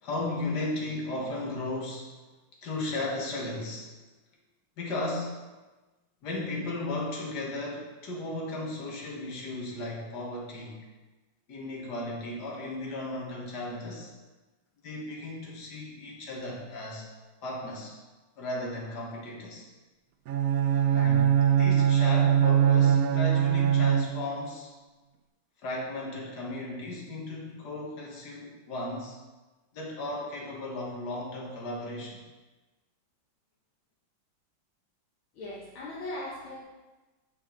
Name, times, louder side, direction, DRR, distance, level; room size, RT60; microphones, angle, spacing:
voice 1, 0.0-2.1 2.6-3.9 4.8-5.3 6.2-10.8 11.5-14.1 14.8-17.1 17.4-17.9 18.4-19.7 20.9-24.7 25.6-29.2 29.7-32.2, left 2 dB, 55° left, -3 dB, 2.0 m, -35 dB
Bowed string instrument, 20.3-24.5, right 9 dB, 85° right, 0.7 m, -22 dB
voice 2, 35.3-36.6, left 1 dB, 70° left, -5 dB, 1.8 m, -38 dB
8.5 x 5.5 x 3.9 m, 1.2 s
omnidirectional pair, 2.3 m